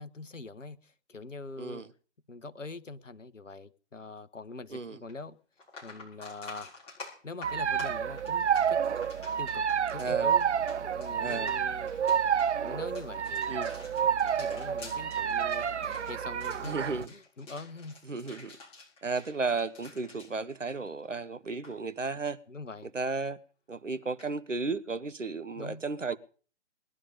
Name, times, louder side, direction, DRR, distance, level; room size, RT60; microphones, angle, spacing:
voice 1, 0.0-1.8 2.3-5.4 5.8-6.7 7.2-8.8 9.4-10.5 10.8-11.9 12.6-13.7 14.0-18.0 22.5-22.9 25.5-25.8, left 3 dB, 80° left, 1.2 m, -44 dB
sound 1, 5.1-5.2 5.6-21.2 21.5-21.7 24.2-24.3, left 3 dB, 15° left, 6.6 m, -49 dB
sound 2, 7.4-17.1, right 8 dB, 65° right, 0.7 m, -29 dB
voice 2, 10.0-10.3 11.2-11.5 13.5-13.7 16.6-17.1 18.1-18.6 19.0-22.4 22.9-23.4 23.7-26.2, right 4 dB, 85° right, 1.3 m, -34 dB
20.5 x 11.0 x 5.3 m
figure-of-eight pair, 130°, 37 cm